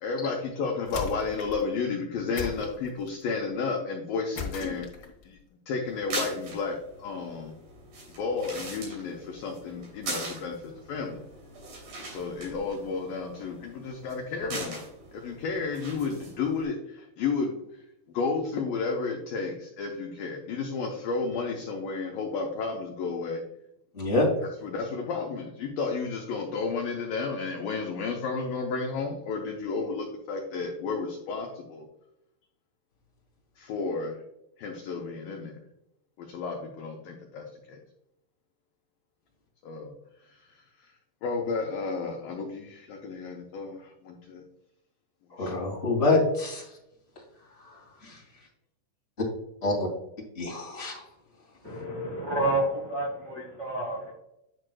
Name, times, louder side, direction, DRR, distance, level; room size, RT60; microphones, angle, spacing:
voice 1, 0.0-5.4 5.7-7.5 8.2-10.6 10.9-11.2 12.1-14.8 15.1-17.5 18.1-23.4 24.6-31.9 33.6-34.2 34.6-35.6 36.2-37.8 39.6-39.9 40.3-40.5 40.8-40.9 41.2-44.4 45.4-45.6, left 4 dB, 85° left, 1 dB, 2.0 m, -32 dB
sound 1, 0.9-1.7 2.4-3.3 4.4-5.2, left 5 dB, 65° left, 1.4 m, -37 dB
sound 2, 5.9-16.6, right 2 dB, 55° right, 4.4 m, -41 dB
voice 2, 23.9-24.3 45.4-46.6 48.0-48.2 49.6-49.7 50.3-51.0, left 2 dB, 50° left, -3 dB, 0.7 m, -25 dB
voice 3, 51.6-54.1, right 1 dB, 75° right, -5 dB, 0.9 m, -29 dB
9.7 x 6.3 x 2.2 m, 0.82 s
omnidirectional pair, 5.1 m